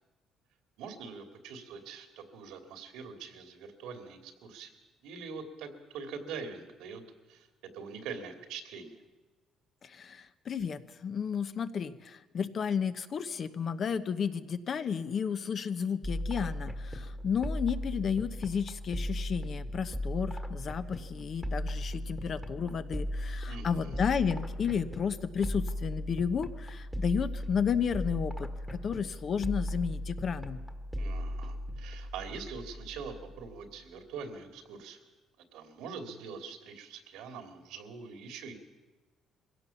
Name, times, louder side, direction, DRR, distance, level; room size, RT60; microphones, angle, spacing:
voice 1, 0.8-4.7 5.0-7.0 7.3-7.5 7.7-9.0 23.5-24.0 31.0-35.0 35.5-38.5, right 5 dB, 85° right, 6 dB, 2.8 m, -43 dB
voice 2, 9.8-30.6, left 7 dB, 40° left, 11 dB, 0.9 m, -32 dB
sound 1, 16.0-33.6, equal, ahead, 1.5 m, -37 dB
22.5 x 16.5 x 7.1 m, 1.2 s
cardioid pair, 135°, 0 cm